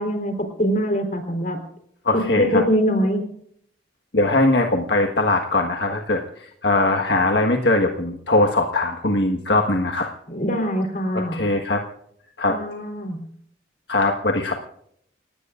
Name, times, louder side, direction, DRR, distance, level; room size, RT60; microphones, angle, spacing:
voice 1, 0.0-1.6 2.4-3.3 10.3-11.4 12.5-13.2, equal, 45° left, 5 dB, 3.8 m, -23 dB
voice 2, 2.0-2.6 4.1-10.1 11.1-11.8 12.4-12.6 13.9-14.6, left 2 dB, 70° left, 3 dB, 1.5 m, -21 dB
30.0 x 16.5 x 2.5 m, 0.68 s
head